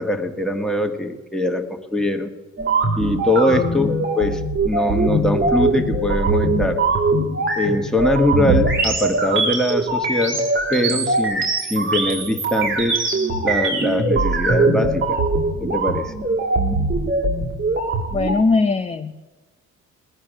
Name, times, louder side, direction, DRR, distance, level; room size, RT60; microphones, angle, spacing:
voice 1, 0.0-2.3 3.0-3.9 4.2-6.8 7.6-10.4 10.7-13.0 13.4-15.2 15.6-16.1, left 1 dB, ahead, 4 dB, 1.4 m, -22 dB
sound 1, 2.6-18.4, right 3 dB, 40° right, 1.8 m, -21 dB
voice 2, 3.6-4.1 18.1-19.1, left 4 dB, 20° left, 6 dB, 0.6 m, -21 dB
19.5 x 9.5 x 6.3 m, 1.3 s
cardioid pair, 90°, 30 cm